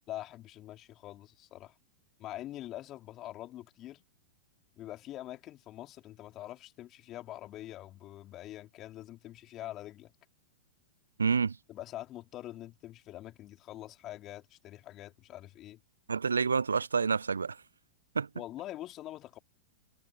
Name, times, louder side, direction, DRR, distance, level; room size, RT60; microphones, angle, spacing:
voice 1, 0.1-1.8 2.2-4.0 4.8-10.1 11.7-15.8 18.4-19.4, left 14 dB, 35° left, 3.7 m, -44 dB
voice 2, 11.2-11.6 16.1-17.6 18.1-18.3, right 5 dB, 80° right, 0.4 m, -28 dB
figure-of-eight pair, 100°, 0 cm